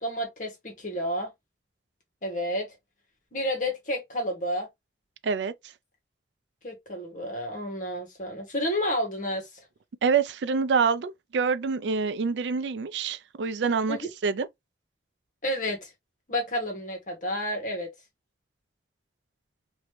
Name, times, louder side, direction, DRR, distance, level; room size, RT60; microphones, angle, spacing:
voice 1, 0.0-1.3 2.2-2.8 3.3-4.7 6.6-9.6 13.9-14.1 15.4-15.9 16.3-17.9, equal, 45° left, 1.5 m, -30 dB
voice 2, 5.2-5.5 10.0-14.0 14.2-14.5, right 5 dB, 90° right, 0.4 m, -26 dB
3.0 x 2.7 x 3.2 m
head